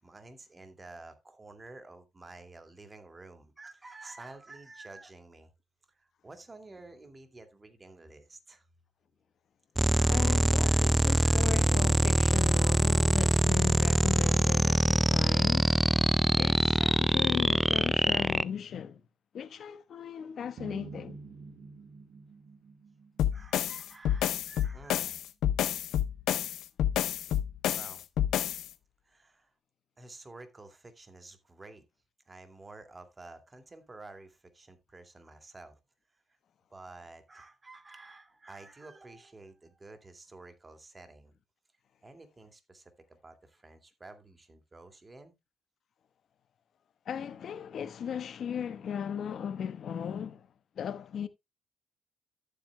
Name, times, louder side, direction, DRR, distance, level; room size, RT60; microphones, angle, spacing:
voice 1, 0.0-5.5 5.9-8.7 9.9-11.7 23.3-25.2 27.7-28.0 29.0-29.5 30.0-31.8 32.3-35.8 36.3-36.4 36.7-41.3 42.0-45.4, right 2 dB, 25° right, 2.2 m, -51 dB
sound 1, 9.8-18.4, right 1 dB, 5° right, 0.4 m, -24 dB
voice 2, 10.1-15.8 16.3-19.0 19.3-21.2 47.1-50.5 50.8-51.3, left 8 dB, 60° left, 1.1 m, -37 dB
sound 2, 20.6-23.8, right 4 dB, 65° right, 1.8 m, -47 dB
sound 3, 23.2-28.7, left 11 dB, 80° left, 0.7 m, -29 dB
13.5 x 8.1 x 2.2 m
cardioid pair, 90°, 0 cm